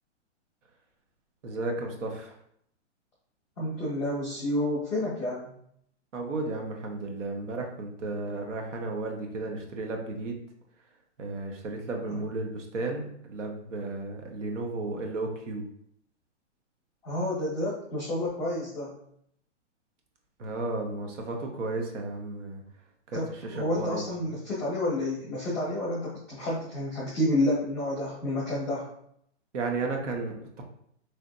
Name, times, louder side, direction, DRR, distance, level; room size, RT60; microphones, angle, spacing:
voice 1, 1.4-2.3 6.1-10.4 11.2-15.7 20.4-22.6 23.3-24.3 29.5-30.6, right 3 dB, 90° right, 3 dB, 0.9 m, -34 dB
voice 2, 3.6-5.5 12.1-12.2 17.0-18.9 23.1-28.9, left 1 dB, ahead, -19 dB, 0.4 m, -30 dB
3.2 x 2.9 x 2.6 m, 0.70 s
hypercardioid pair, 175°, 36 cm